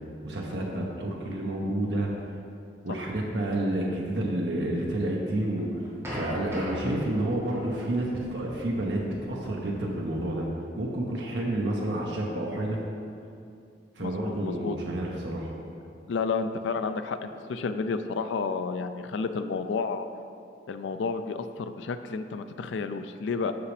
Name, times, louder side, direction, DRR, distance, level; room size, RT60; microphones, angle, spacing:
voice 1, 0.2-2.1 2.8-5.7 6.1-10.5 10.8-12.8 14.0-15.5, right 1 dB, 70° right, -2 dB, 0.8 m, -29 dB
sound 1, 5.3-10.2, equal, 15° right, 1.6 m, -40 dB
voice 2, 14.0-14.8 16.1-20.1 20.7-23.5, left 4 dB, 90° left, 9 dB, 0.4 m, -31 dB
8.2 x 6.1 x 3.3 m, 2.5 s
head